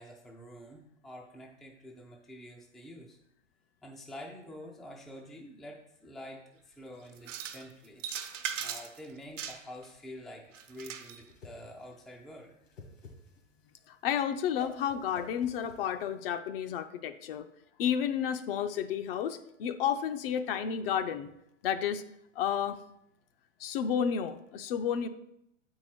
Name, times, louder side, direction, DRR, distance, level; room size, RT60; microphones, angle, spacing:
voice 1, 0.0-3.2 3.8-8.0 8.6-12.5, left 1 dB, ahead, -1 dB, 0.3 m, -47 dB
sound 1, 7.2-7.6 8.0-9.0 9.4-9.9 10.5-11.2, right 8 dB, 70° right, 1.0 m, -38 dB
Whoosh swoosh swish, 10.8-16.3, left 2 dB, 80° left, 2.1 m, -52 dB
voice 2, 13.9-17.5 17.8-21.3 21.6-22.0 22.4-22.8 23.6-25.1, left 8 dB, 50° left, 10 dB, 0.6 m, -31 dB
7.1 x 4.8 x 4.3 m, 0.80 s
hypercardioid pair, 120°, 38 cm